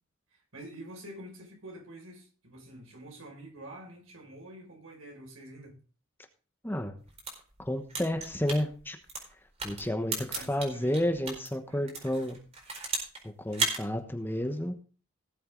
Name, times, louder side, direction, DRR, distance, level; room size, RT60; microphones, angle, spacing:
voice 1, 0.3-5.8 9.8-11.0 11.7-11.9, right 1 dB, 80° right, 1 dB, 5.8 m, -47 dB
voice 2, 6.6-6.9 7.6-9.0 9.6-12.4 13.2-14.7, left 1 dB, 10° left, 6 dB, 1.1 m, -31 dB
sound 1, 7.0-11.5 11.9-13.2 13.5-13.8, right 3 dB, 30° right, 4.5 m, -34 dB
18.0 x 7.8 x 3.9 m, 0.38 s
head